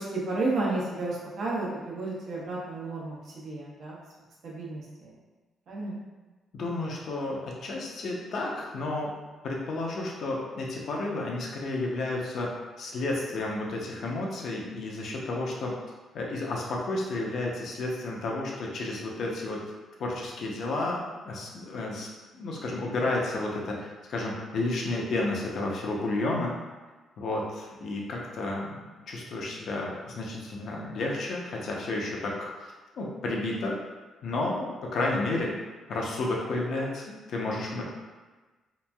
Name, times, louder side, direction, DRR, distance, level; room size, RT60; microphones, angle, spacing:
voice 1, 0.0-3.2 3.4-4.0 4.4-5.1 5.7-6.0, right 2 dB, 65° right, -5 dB, 0.8 m, -32 dB
voice 2, 6.5-9.1 9.4-12.5 12.8-15.7 16.1-19.6 20.0-22.1 22.3-26.5 27.2-32.7 33.0-33.8 34.2-35.6 35.9-37.8, left 2 dB, 65° left, -2 dB, 0.6 m, -31 dB
2.9 x 2.5 x 2.2 m, 1.3 s
cardioid pair, 90°, 0 cm